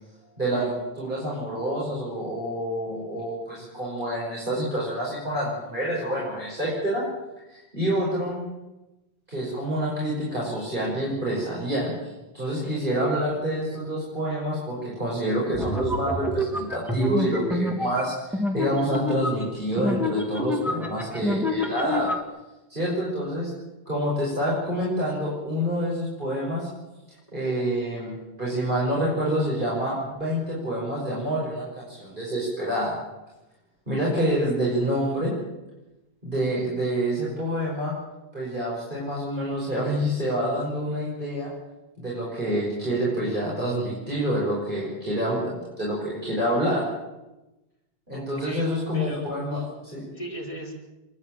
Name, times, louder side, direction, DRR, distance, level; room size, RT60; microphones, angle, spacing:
voice 1, 0.4-7.1 7.5-8.4 9.3-22.1 22.7-23.5 23.9-26.7 27.3-33.0 33.9-35.3 36.2-37.9 38.3-41.5 42.0-46.9 48.1-50.1, equal, 55° right, -5 dB, 5.8 m, -27 dB
sound 1, 15.5-22.2, left 1 dB, ahead, 1.7 m, -28 dB
voice 2, 48.1-49.2 50.1-50.7, equal, 30° left, -2 dB, 5.2 m, -37 dB
28.0 x 10.5 x 8.8 m, 1.0 s
omnidirectional pair, 1.0 m